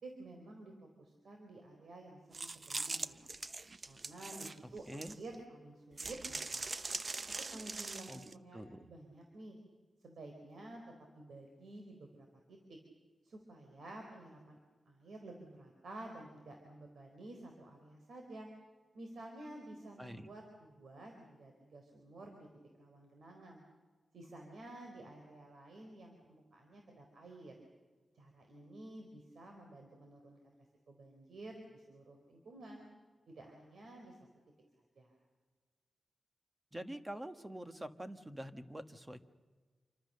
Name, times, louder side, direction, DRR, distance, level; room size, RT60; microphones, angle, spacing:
voice 1, 0.0-3.3 3.9-4.8 5.2-6.6 7.3-9.6 10.0-12.8 13.2-14.6 14.9-18.5 18.9-22.5 22.8-23.6 24.1-27.6 28.1-30.5 30.9-32.9 33.3-34.2 35.0-35.1, right 2 dB, 80° right, 3 dB, 4.0 m, -52 dB
sound 1, 2.3-5.4 6.0-8.3, right 3 dB, 40° right, 0.8 m, -42 dB
voice 2, 4.6-5.2 8.1-8.9 20.0-20.3 36.7-39.2, right 1 dB, 15° right, 9 dB, 1.4 m, -46 dB
28.0 x 24.5 x 6.8 m, 1.4 s
wide cardioid pair, 135°, 0 cm